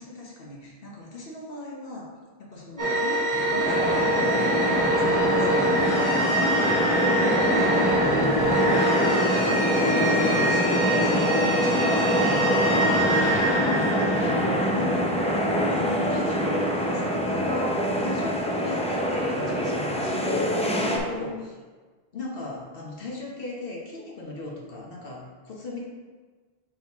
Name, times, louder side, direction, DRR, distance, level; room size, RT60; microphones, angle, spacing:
voice 1, 0.0-2.1 2.4-6.6 6.9-7.2 7.5-12.2 14.2-15.3 15.7-21.5 22.1-25.8, left 2 dB, 65° left, -3 dB, 1.2 m, -38 dB
sound 1, 2.8-15.3, right 1 dB, 20° right, 1.1 m, -25 dB
sound 2, 3.6-21.0, equal, 10° left, 0.5 m, -24 dB
voice 2, 7.0-7.9 13.1-14.6 21.2-21.3, left 1 dB, 35° left, -3 dB, 1.1 m, -38 dB
6.1 x 4.7 x 3.5 m, 1.4 s
omnidirectional pair, 1.0 m